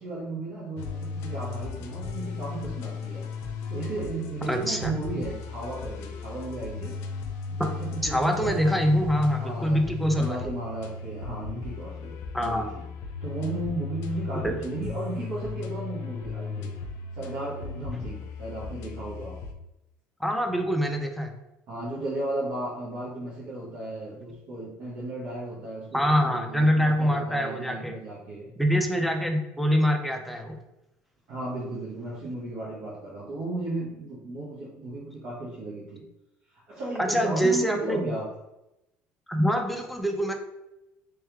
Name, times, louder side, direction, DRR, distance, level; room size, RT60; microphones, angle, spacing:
voice 1, 0.0-3.3 3.7-7.0 7.5-8.7 9.4-12.9 13.2-16.7 17.1-19.4 21.7-28.5 31.3-36.0 36.5-38.3, right 2 dB, 65° right, -7 dB, 1.2 m, -35 dB
sound 1, 0.8-19.5, left 5 dB, 70° left, 0.5 m, -36 dB
voice 2, 4.5-4.9 8.0-10.4 12.3-12.7 14.3-14.5 20.2-21.3 25.9-27.9 28.6-30.6 37.0-38.1 39.3-40.3, equal, ahead, 3 dB, 0.5 m, -25 dB
3.2 x 3.1 x 3.4 m, 0.91 s
cardioid pair, 120°, 5 cm